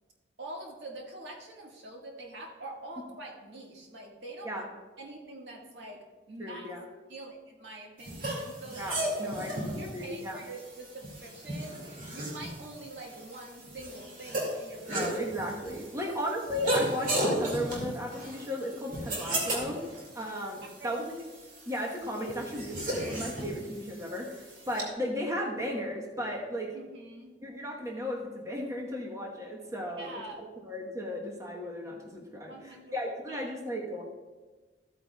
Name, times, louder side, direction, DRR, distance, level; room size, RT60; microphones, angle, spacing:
voice 1, 0.4-4.6 5.0-6.7 7.1-8.8 9.7-11.8 12.1-15.1 20.6-21.0 26.7-27.4 30.0-30.4 32.5-32.9 33.3-33.4, right 2 dB, 85° right, -1 dB, 1.7 m, -45 dB
voice 2, 6.4-6.8 8.8-10.4 14.9-19.8 20.1-21.0 21.6-26.8 27.4-34.0, equal, 20° right, -1 dB, 1.1 m, -35 dB
sound 1, 8.0-24.8, right 1 dB, 50° right, 2.2 m, -35 dB
14.0 x 8.5 x 2.3 m, 1.3 s
head